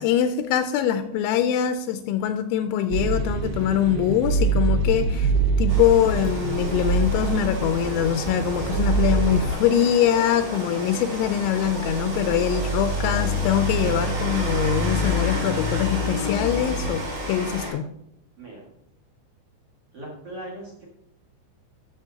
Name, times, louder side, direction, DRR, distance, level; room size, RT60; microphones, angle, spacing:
voice 1, 0.0-5.3 5.6-17.9, left 10 dB, 85° left, 9 dB, 2.9 m, -23 dB
sound 1, 2.9-9.5, right 4 dB, 80° right, 2.3 m, -24 dB
Rain, 5.7-17.7, left 1 dB, 35° right, 4.1 m, -29 dB
voice 2, 12.5-13.3 18.4-18.7 19.9-20.8, right 1 dB, 55° right, -3 dB, 1.7 m, -40 dB
12.5 x 7.1 x 2.8 m, 0.77 s
omnidirectional pair, 5.4 m